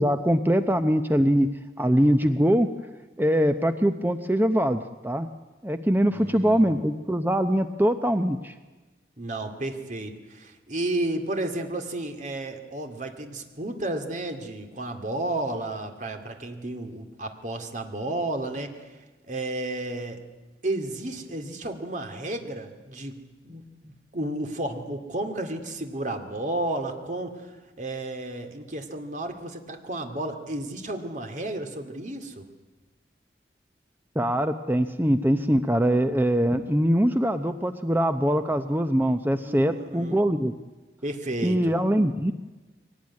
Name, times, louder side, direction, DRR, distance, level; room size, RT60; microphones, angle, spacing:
voice 1, 0.0-1.5 1.8-2.7 3.2-5.3 5.6-8.5 34.2-40.5 41.4-42.3, equal, 10° right, 9 dB, 0.7 m, -22 dB
voice 2, 6.1-6.8 9.2-19.0 19.3-20.2 20.6-27.5 27.8-32.5 39.5-40.2 41.0-41.7, right 2 dB, 45° right, 5 dB, 2.3 m, -32 dB
22.5 x 18.5 x 9.7 m, 1.2 s
head